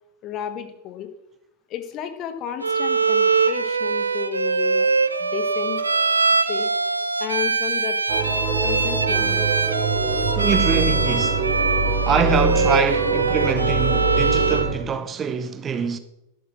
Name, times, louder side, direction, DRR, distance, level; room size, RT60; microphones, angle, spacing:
voice 1, 0.2-1.1 1.7-4.9 5.2-5.8 6.5-6.7 7.2-8.0 8.6-9.6, left 10 dB, 35° left, 1.4 m, -32 dB
Bowed string instrument, 2.6-14.8, right 4 dB, 80° right, 0.7 m, -22 dB
sound 1, 8.1-14.7, right 3 dB, 40° right, 2.8 m, -24 dB
voice 2, 10.4-11.5 12.0-16.0, right 6 dB, 25° right, 0.7 m, -24 dB
11.0 x 8.3 x 6.2 m
figure-of-eight pair, 90°, 0 cm